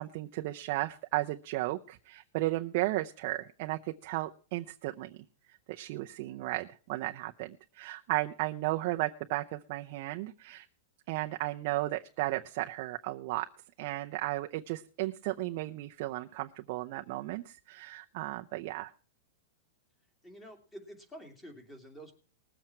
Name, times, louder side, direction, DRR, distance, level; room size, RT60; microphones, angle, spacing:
voice 1, 0.0-5.2 5.5-10.7 11.1-13.5 13.8-18.9, right 18 dB, 45° right, 5 dB, 0.6 m, -34 dB
voice 2, 20.2-22.2, equal, 10° left, 5 dB, 2.5 m, -49 dB
20.0 x 7.7 x 4.4 m, 0.38 s
supercardioid pair, 165°, 0 cm